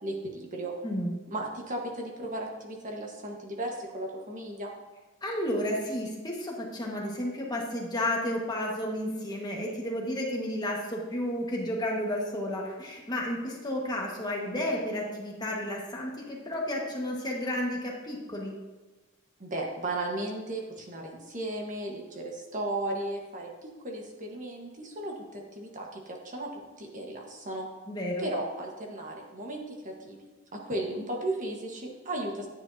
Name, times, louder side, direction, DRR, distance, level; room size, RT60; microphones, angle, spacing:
voice 1, 0.0-0.7 1.3-4.7 19.4-27.7 28.2-30.2 30.5-32.5, right 1 dB, 40° right, 0 dB, 1.4 m, -35 dB
voice 2, 0.8-1.1 5.2-18.5 27.9-28.3, left 1 dB, 20° left, -2 dB, 1.5 m, -32 dB
11.0 x 9.8 x 2.8 m, 1.2 s
head